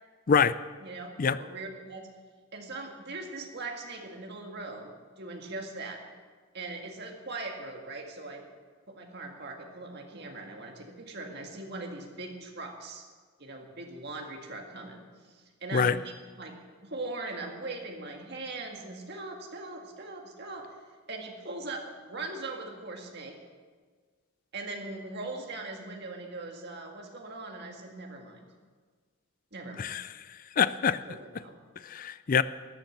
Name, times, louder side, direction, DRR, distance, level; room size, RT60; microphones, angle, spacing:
voice 1, 0.3-0.6 1.2-1.4 15.7-16.0 29.8-30.0 30.6-31.0 31.8-32.4, left 6 dB, 40° left, 15 dB, 0.4 m, -24 dB
voice 2, 0.8-2.1 2.5-6.0 6.5-8.5 8.9-13.1 13.4-15.1 15.3-16.6 16.9-20.8 21.1-23.4 24.5-28.5 29.5-29.9 31.0-31.6, right 2 dB, 50° right, 2 dB, 1.9 m, -40 dB
13.5 x 9.4 x 7.2 m, 1.5 s
head